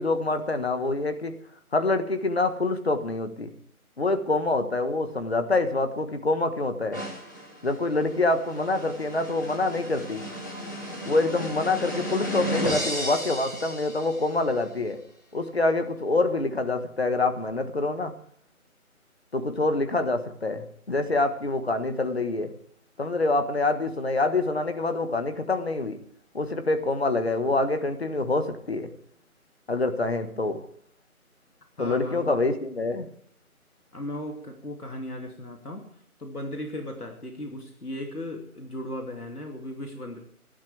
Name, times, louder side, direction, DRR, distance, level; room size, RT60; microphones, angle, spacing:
voice 1, 0.0-1.3 1.7-3.5 4.0-7.0 7.6-10.2 11.0-15.0 15.3-18.1 19.3-22.5 23.0-26.0 26.3-28.9 29.7-30.6 31.8-33.1, left 2 dB, 45° left, 8 dB, 1.7 m, -26 dB
sound 1, 6.9-14.5, equal, 15° left, 1.6 m, -34 dB
voice 2, 31.8-32.4 33.9-40.2, left 1 dB, 85° left, 2 dB, 2.9 m, -37 dB
26.5 x 12.0 x 3.5 m, 0.63 s
figure-of-eight pair, 165°, 44 cm